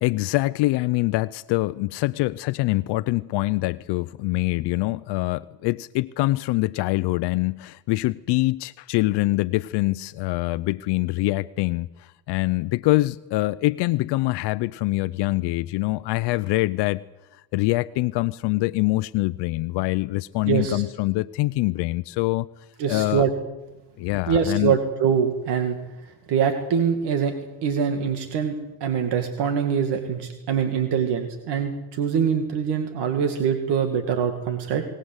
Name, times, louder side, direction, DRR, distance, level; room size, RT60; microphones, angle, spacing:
voice 1, 0.0-17.0 17.5-22.5 22.9-23.3 24.0-24.8, left 19 dB, 70° left, 14 dB, 0.7 m, -24 dB
voice 2, 20.5-20.8 22.8-23.3 24.3-25.8 26.3-27.4 27.6-34.8, right 7 dB, 65° right, 5 dB, 2.4 m, -24 dB
22.5 x 19.0 x 8.1 m, 1.0 s
cardioid pair, 120°, 43 cm